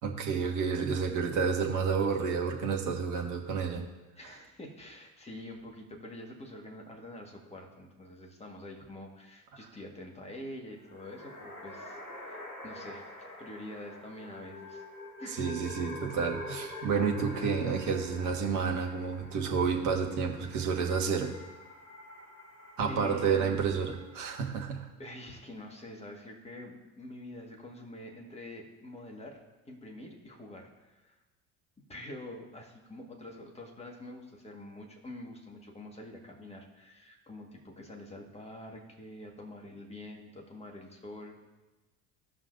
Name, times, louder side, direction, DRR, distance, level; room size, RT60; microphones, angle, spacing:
voice 1, 0.0-3.8 15.4-21.3 22.8-24.9, right 6 dB, 45° right, 2 dB, 1.5 m, -30 dB
voice 2, 4.2-14.8 15.2-15.4 22.9-23.6 25.0-29.4 29.6-31.1 31.9-41.4, left 1 dB, 15° left, 1 dB, 1.8 m, -46 dB
sound 1, 10.8-24.1, left 1 dB, 85° left, 1.2 m, -46 dB
16.5 x 5.6 x 2.7 m, 1.1 s
figure-of-eight pair, 65°, 42 cm